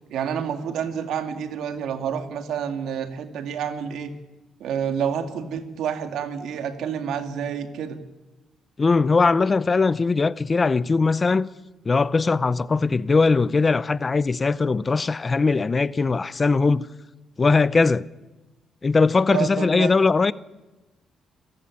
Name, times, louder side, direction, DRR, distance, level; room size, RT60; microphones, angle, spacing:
voice 1, 0.1-4.1 4.6-8.0 19.3-19.9, right 8 dB, 80° right, 2.2 m, -28 dB
voice 2, 8.8-11.5 11.9-16.9 17.4-18.0 18.8-20.3, left 4 dB, 30° left, 0.7 m, -20 dB
28.0 x 14.5 x 9.6 m
cardioid pair, 90°, 0 cm